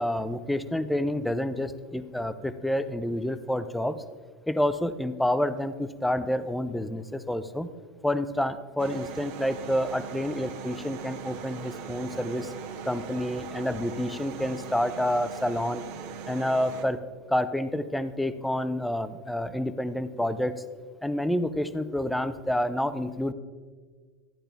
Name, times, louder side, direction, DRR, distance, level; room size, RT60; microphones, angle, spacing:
voice 1, 0.0-4.0 4.5-7.7 8.0-12.5 12.8-15.8 16.3-17.0 17.3-20.6 21.0-23.3, left 1 dB, ahead, 12 dB, 0.4 m, -28 dB
sound 1, 8.8-16.8, right 6 dB, 65° right, 1.1 m, -40 dB
12.5 x 10.5 x 3.4 m, 1.5 s
supercardioid pair, 160°, 0 cm